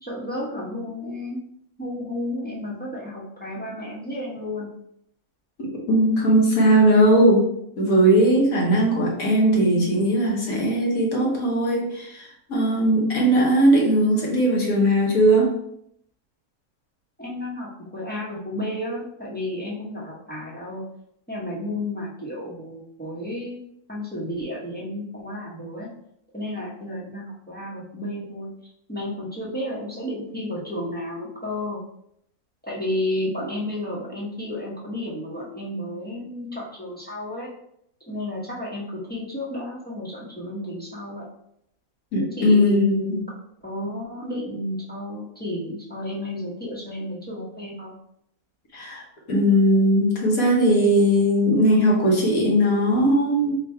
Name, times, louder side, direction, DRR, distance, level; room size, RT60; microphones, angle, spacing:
voice 1, 0.0-1.4 1.8-4.7 17.2-20.8 21.3-23.6 23.9-25.9 26.3-28.5 28.9-31.8 32.6-37.5 38.1-41.3 42.4-43.2 43.6-47.9, left 1 dB, 5° left, -6 dB, 0.9 m, -32 dB
voice 2, 5.9-7.4 7.8-15.5 42.1-43.2 48.7-49.0 49.3-53.5, equal, 65° left, -2 dB, 1.5 m, -19 dB
3.7 x 2.5 x 4.4 m, 0.73 s
omnidirectional pair, 1.6 m